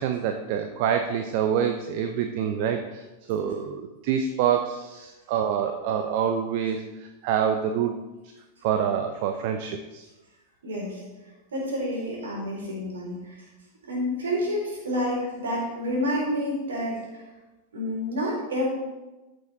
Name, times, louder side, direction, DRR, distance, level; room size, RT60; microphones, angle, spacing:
voice 1, 0.0-3.0 3.3-7.9 8.6-10.0, right 8 dB, 45° right, 6 dB, 0.7 m, -26 dB
voice 2, 10.6-11.0 11.5-13.5 13.8-17.2 17.7-18.7, equal, 65° right, -2 dB, 3.9 m, -29 dB
14.0 x 6.5 x 4.1 m, 1.1 s
figure-of-eight pair, 90°, 0 cm